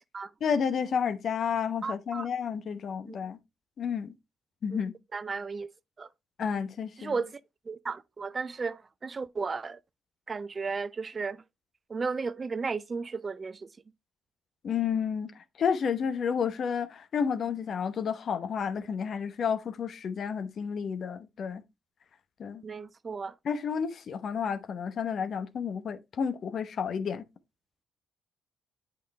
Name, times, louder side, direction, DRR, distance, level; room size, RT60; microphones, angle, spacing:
voice 1, 0.4-3.4 3.8-4.1 4.6-4.9 6.4-7.2 14.6-15.3 15.6-21.6 22.4-22.6 23.4-27.2, left 7 dB, 55° left, 0.9 m, -31 dB
voice 2, 1.8-2.3 3.1-3.2 4.7-4.8 5.1-5.7 6.0-6.1 7.0-7.4 7.7-9.8 10.3-11.4 11.9-13.7 22.6-23.3, right 4 dB, 35° right, 0.4 m, -34 dB
8.4 x 5.3 x 3.2 m
hypercardioid pair, 45°, 0 cm